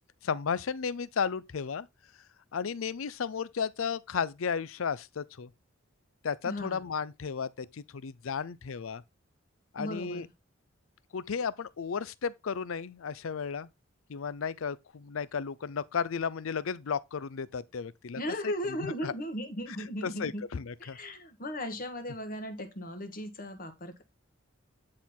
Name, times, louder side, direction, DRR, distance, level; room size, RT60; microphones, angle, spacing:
voice 1, 0.2-1.9 2.5-5.5 6.2-9.0 9.7-10.3 11.1-13.7 14.1-18.2 18.8-19.1 19.8-21.0, left 6 dB, 75° left, 0.5 m, -34 dB
voice 2, 6.4-6.8 9.8-10.3 18.1-20.5 20.8-24.0, equal, 45° left, 1.5 m, -37 dB
9.6 x 4.4 x 3.7 m
head